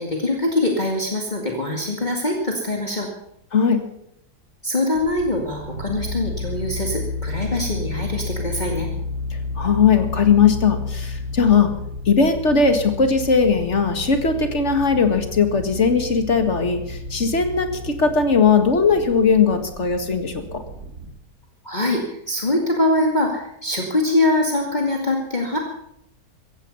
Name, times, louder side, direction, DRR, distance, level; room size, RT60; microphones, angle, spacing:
voice 1, 0.0-3.1 4.6-8.9 21.6-25.6, left 2 dB, 30° left, 0 dB, 2.3 m, -23 dB
voice 2, 3.5-3.8 9.3-11.7 12.1-20.6, left 5 dB, 45° left, 7 dB, 2.2 m, -19 dB
sound 1, 4.9-21.1, left 3 dB, 70° right, 3.1 m, -32 dB
16.0 x 15.5 x 5.5 m, 0.76 s
omnidirectional pair, 1.7 m